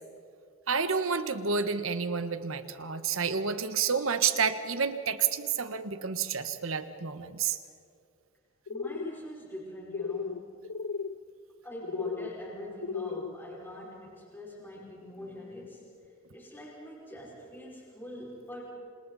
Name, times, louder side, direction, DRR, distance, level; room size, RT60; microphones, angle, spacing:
voice 1, 0.7-7.6, right 6 dB, 75° right, 10 dB, 1.3 m, -29 dB
sound 1, 8.7-9.2 9.9-10.4 10.6-11.1 11.8-12.3 12.8-13.3, left 5 dB, 85° left, 0.6 m, -35 dB
voice 2, 8.7-10.6 11.6-15.9 16.3-18.7, equal, 10° left, -6 dB, 5.8 m, -44 dB
28.5 x 27.0 x 4.2 m, 2.4 s
head